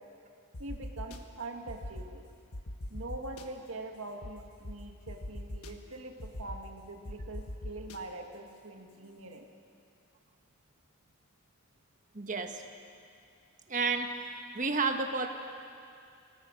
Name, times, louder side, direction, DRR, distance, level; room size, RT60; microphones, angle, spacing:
sound 1, 0.5-1.2 1.7-2.1 2.5-3.5 4.2-4.3 4.6-4.7 5.1-5.7 6.2-6.6 7.1-8.0, left 1 dB, 75° left, 1.4 m, -40 dB
voice 1, 0.6-2.2 2.9-9.5, right 2 dB, 65° right, 2 dB, 1.9 m, -43 dB
voice 2, 12.1-12.6 13.7-14.1 14.5-15.3, right 4 dB, 35° right, 5 dB, 1.3 m, -30 dB
25.0 x 17.5 x 6.5 m, 2.4 s
head